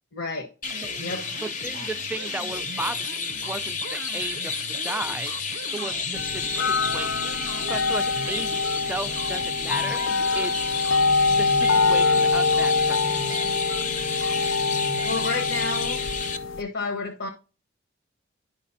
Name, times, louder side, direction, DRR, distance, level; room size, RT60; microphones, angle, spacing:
voice 1, 0.1-0.5 1.0-1.2 15.0-16.0 16.6-17.3, left 3 dB, 70° left, 1.1 m, -30 dB
Chirp tweet, 0.6-16.4, left 5 dB, 40° left, 0.8 m, -31 dB
sound 1, 0.6-15.5, right 5 dB, 75° right, 0.4 m, -41 dB
voice 2, 1.3-5.3 5.7-7.3 7.6-10.0 10.3-10.7 11.3-13.2, right 2 dB, 10° right, 0.3 m, -35 dB
sound 2, 6.1-16.6, left 4 dB, 85° left, 0.5 m, -25 dB
11.0 x 5.1 x 2.7 m
head